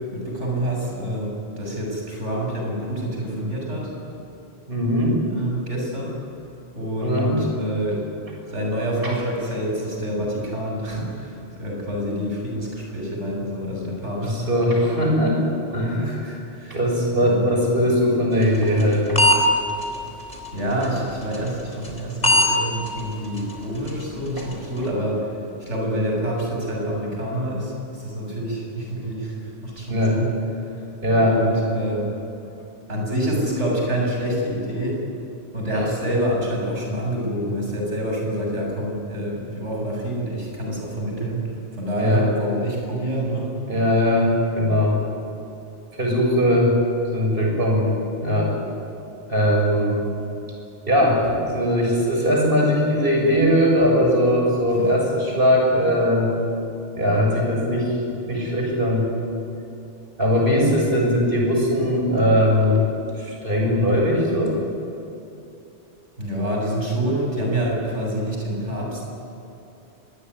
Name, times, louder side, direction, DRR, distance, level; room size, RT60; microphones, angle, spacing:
voice 1, 0.0-3.9 5.3-6.1 6.7-8.0 8.5-14.3 16.0-16.8 17.2-17.5 20.5-25.3 25.6-30.3 30.6-30.8 31.2-32.1 32.9-35.0 35.5-43.5 54.8-54.9 66.2-69.1, right 1 dB, 80° right, -1 dB, 7.6 m, -27 dB
voice 2, 4.7-5.2 7.0-7.4 14.2-15.4 15.7-16.4 16.7-19.2 24.4-24.5 29.9-30.2 31.0-31.4 42.0-42.3 43.7-45.0 46.0-46.7 47.1-47.9 48.2-48.5 49.3-50.0 50.9-56.3 56.9-58.0 58.3-59.1 60.2-62.8 63.2-64.6, equal, 50° right, -1 dB, 7.4 m, -20 dB
sound 1, 18.4-19.4 19.8-20.0 20.3-20.5 20.8-21.0 21.3-21.5 21.8-22.0 22.2-22.5 22.9-23.0 23.4-23.5 23.9-24.0 24.4-24.6, left 1 dB, 35° left, 4.2 m, -18 dB
24.5 x 21.5 x 9.8 m, 2.8 s
omnidirectional pair, 1.2 m